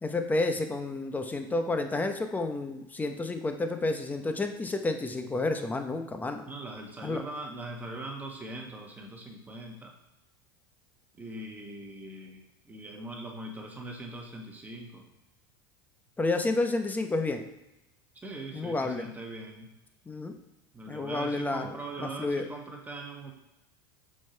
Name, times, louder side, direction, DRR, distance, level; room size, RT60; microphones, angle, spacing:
voice 1, 0.0-6.4 7.0-7.2 16.2-17.4 18.5-19.1 20.1-20.3 20.9-22.5, left 2 dB, 15° left, 6 dB, 0.8 m, -30 dB
voice 2, 6.5-9.9 11.2-15.0 18.1-19.7 20.7-23.3, right 2 dB, 15° right, 1 dB, 1.6 m, -41 dB
6.3 x 5.6 x 4.5 m, 0.94 s
supercardioid pair, 105°, 12 cm